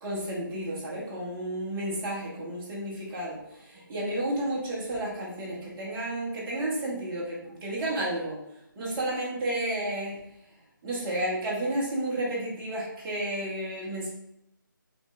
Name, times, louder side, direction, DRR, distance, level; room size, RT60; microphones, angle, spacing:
voice 1, 0.0-8.4 8.8-10.2 10.8-14.1, right 1 dB, 10° right, -7 dB, 0.5 m, -32 dB
4.1 x 3.0 x 2.3 m, 0.81 s
figure-of-eight pair, 165°, 11 cm